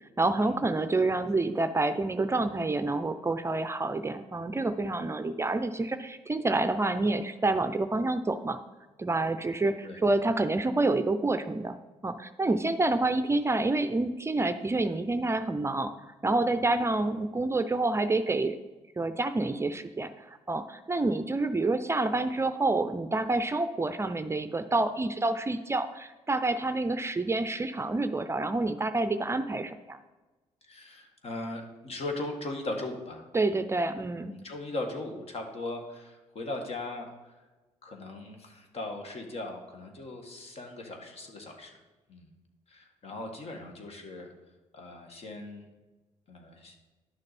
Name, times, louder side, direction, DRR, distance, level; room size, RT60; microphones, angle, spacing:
voice 1, 0.2-8.6 9.0-11.8 12.0-15.9 16.2-18.6 19.0-30.0 33.3-34.3, right 2 dB, 20° right, 10 dB, 0.5 m, -28 dB
voice 2, 30.6-33.2 34.3-37.4 37.8-41.8 42.1-42.3 42.7-44.3 44.7-45.7 46.3-46.8, left 2 dB, 55° left, 3 dB, 1.8 m, -39 dB
11.0 x 6.5 x 4.2 m, 1.2 s
cardioid pair, 80°, 12 cm